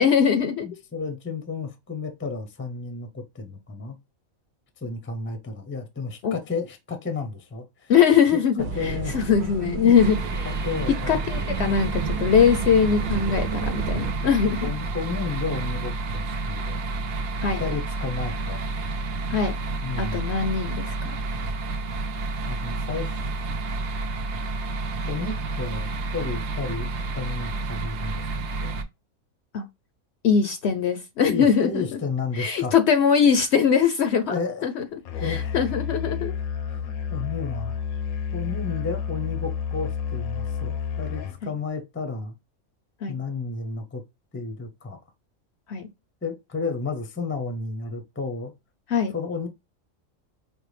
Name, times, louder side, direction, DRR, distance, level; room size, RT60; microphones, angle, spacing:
voice 1, 0.0-0.7 6.2-6.4 7.9-10.2 11.1-14.7 17.4-17.6 19.3-19.5 20.0-21.2 29.5-29.6 30.2-32.0 32.4-34.9 35.2-36.3 41.4-41.6 43.0-43.2 45.7-45.9 48.9-49.1, left 7 dB, 65° left, 0.7 m, -21 dB
voice 2, 0.6-4.0 4.8-7.9 8.7-9.1 9.8-9.9 10.4-11.2 14.4-16.8 17.6-18.6 19.8-20.2 22.5-23.2 25.0-26.9 27.2-28.8 31.3-32.7 34.3-34.7 35.2-35.6 36.7-37.8 38.3-42.3 43.1-44.0 44.3-45.0 46.2-48.5 49.1-49.5, left 4 dB, 15° left, 0.4 m, -32 dB
sound 1, 8.6-14.1, right 6 dB, 90° right, 1.1 m, -31 dB
sound 2, 9.9-28.8, right 3 dB, 60° right, 0.9 m, -30 dB
Musical instrument, 35.1-41.4, left 7 dB, 85° left, 1.1 m, -30 dB
5.2 x 2.2 x 3.1 m
omnidirectional pair, 1.4 m